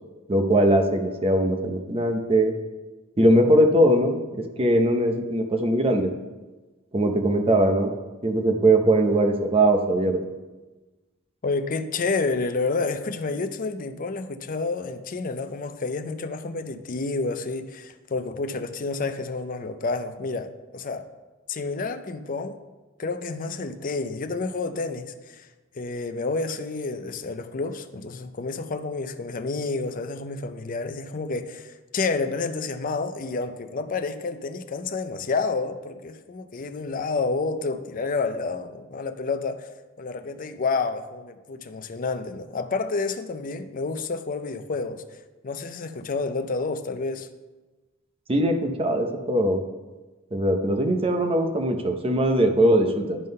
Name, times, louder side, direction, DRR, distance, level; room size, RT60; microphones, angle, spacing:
voice 1, 0.3-2.5 3.2-6.1 6.9-7.9 8.2-10.2 48.3-49.6 50.3-53.2, right 1 dB, 25° right, 5 dB, 0.7 m, -21 dB
voice 2, 11.4-21.1 21.5-22.6 23.0-25.5 25.7-39.7 40.0-45.0 45.4-47.3, left 3 dB, 40° left, 9 dB, 0.5 m, -29 dB
11.0 x 3.8 x 5.3 m, 1.2 s
head